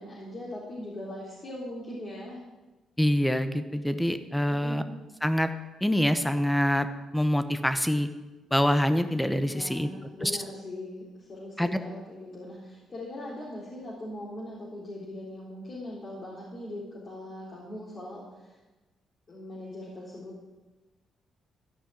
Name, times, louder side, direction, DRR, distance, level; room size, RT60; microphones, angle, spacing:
voice 1, 0.0-2.4 4.5-4.9 9.4-18.6 19.3-20.3, left 1 dB, 40° left, -6 dB, 3.7 m, -40 dB
voice 2, 3.0-4.8 5.2-5.5 5.8-6.9 7.1-8.1 8.5-9.9 10.2-10.3 11.6-11.8, equal, 5° left, 10 dB, 1.0 m, -25 dB
14.5 x 5.6 x 8.9 m, 1.1 s
cardioid pair, 90°, 0 cm